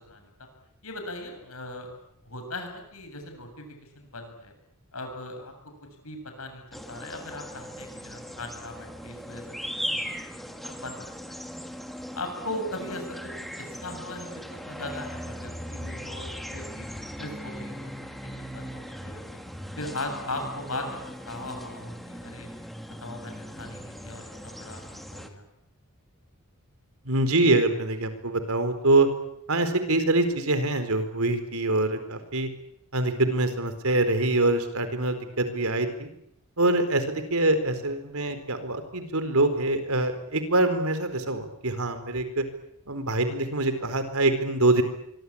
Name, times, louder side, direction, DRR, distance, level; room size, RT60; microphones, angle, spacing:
voice 1, 0.8-1.9 2.3-3.7 3.9-4.5 4.9-5.5 6.0-10.1 10.6-11.4 12.1-13.1 13.6-14.3 14.7-17.9 18.4-19.2 19.8-21.0 21.3-22.5 23.0-24.8 25.1-25.4, left 2 dB, 75° left, 5 dB, 7.8 m, -38 dB
sound 1, 6.7-25.3, equal, ahead, 2.3 m, -39 dB
voice 2, 27.1-29.1 29.5-32.5 32.9-36.1 36.6-42.4 42.9-44.8, right 2 dB, 75° right, 9 dB, 4.4 m, -24 dB
24.5 x 24.5 x 8.8 m, 0.73 s
head